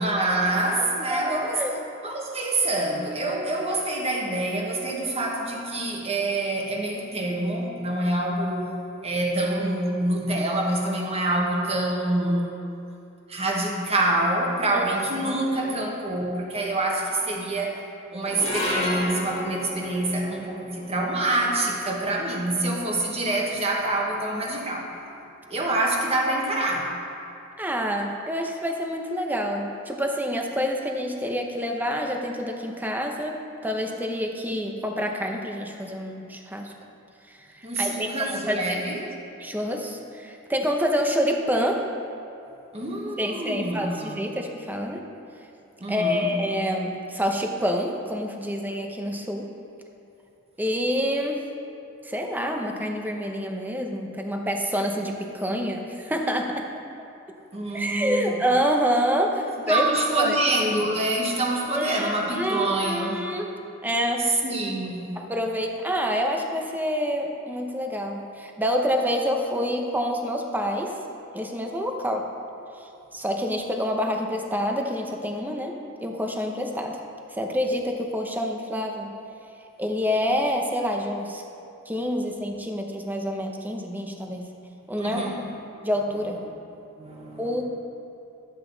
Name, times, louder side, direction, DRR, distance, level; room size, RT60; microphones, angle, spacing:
voice 1, 0.0-1.7 2.0-8.7 9.0-12.5 13.3-17.8 18.1-24.9 25.5-26.9 37.6-39.1 42.7-44.2 45.8-46.3 57.5-58.4 59.7-63.3 64.2-65.1 85.0-85.5 86.4-86.5 87.0-87.6, right 2 dB, 30° right, -1 dB, 1.3 m, -26 dB
voice 2, 1.1-1.7 14.7-14.8 15.2-15.4 15.6-15.7 27.6-36.7 37.5-38.8 39.4-41.9 43.2-45.0 45.9-49.5 50.6-51.4 52.0-56.7 57.7-59.9 60.2-60.4 61.7-63.5 63.8-64.3 65.2-70.9 71.3-72.3 73.1-75.7 76.0-77.0 77.3-79.2 79.8-81.4 81.9-84.4 84.9-85.2 85.8-86.4 87.4-87.6, equal, 10° right, 2 dB, 0.8 m, -27 dB
sound 1, 18.2-24.7, left 1 dB, 30° left, 1.6 m, -34 dB
12.0 x 8.1 x 3.9 m, 2.8 s
head